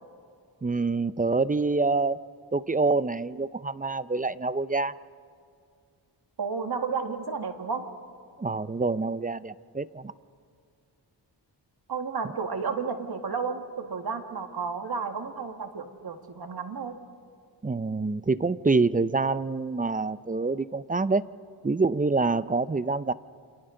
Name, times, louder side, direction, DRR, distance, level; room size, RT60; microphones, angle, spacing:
voice 1, 0.6-2.2 2.5-4.9 8.4-10.1 17.6-21.2 21.6-23.1, right 3 dB, 20° right, 16 dB, 0.5 m, -26 dB
voice 2, 6.4-7.9 11.9-17.0, right 5 dB, 60° right, 6 dB, 1.8 m, -32 dB
29.5 x 27.0 x 3.8 m, 2.2 s
wide cardioid pair, 80°, 43 cm